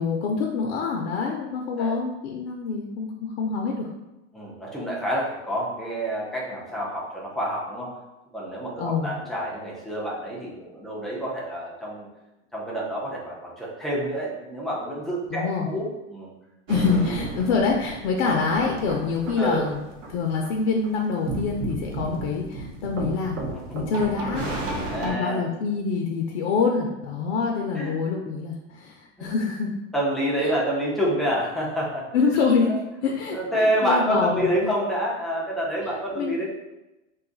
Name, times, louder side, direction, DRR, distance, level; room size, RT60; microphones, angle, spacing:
voice 1, 0.0-3.9 8.8-9.1 15.3-15.7 16.7-19.8 20.1-23.4 23.7-24.5 25.0-29.7 32.1-34.8 36.2-36.4, left 5 dB, 60° left, 0 dB, 0.6 m, -26 dB
voice 2, 4.3-7.9 8.3-12.1 12.5-16.3 17.0-17.3 18.2-18.3 19.4-19.6 24.8-25.4 27.7-28.0 29.2-29.3 29.9-32.1 32.7-32.8 33.3-36.5, equal, ahead, -5 dB, 0.4 m, -28 dB
sound 1, 16.7-25.1, right 2 dB, 80° right, 0.8 m, -33 dB
2.5 x 2.4 x 3.8 m, 0.99 s
supercardioid pair, 135°, 37 cm